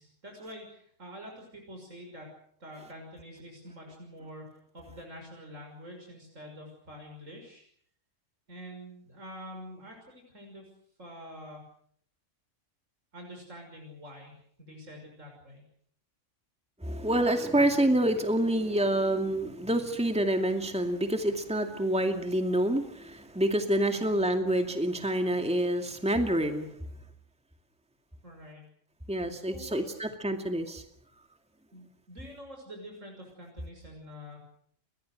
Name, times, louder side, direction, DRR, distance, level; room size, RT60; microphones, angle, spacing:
voice 1, 0.0-2.3 2.6-7.6 8.5-10.7 11.0-11.6 13.1-15.6 23.9-24.2 28.2-28.7 29.5-30.0 31.7-34.4, equal, 80° right, 1 dB, 6.6 m, -46 dB
voice 2, 16.8-26.7 29.1-30.8, right 1 dB, 5° right, 5 dB, 2.3 m, -27 dB
30.0 x 23.0 x 6.6 m, 0.63 s
omnidirectional pair, 1.3 m